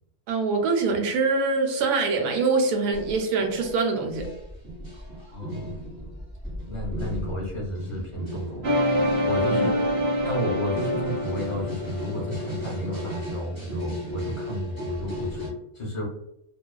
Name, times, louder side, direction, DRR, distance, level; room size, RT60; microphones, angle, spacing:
voice 1, 0.3-4.2 9.5-9.7, right 4 dB, 85° right, 2 dB, 1.1 m, -24 dB
sound 1, 2.9-9.2 9.5-15.5, equal, 15° right, 0.8 m, -36 dB
voice 2, 5.3-5.8 6.7-8.7 9.2-9.7 10.2-16.1, equal, 40° left, -4 dB, 0.4 m, -32 dB
sound 2, 8.6-13.6, left 1 dB, 65° right, 0.5 m, -26 dB
2.4 x 2.3 x 2.2 m, 0.81 s
omnidirectional pair, 1.6 m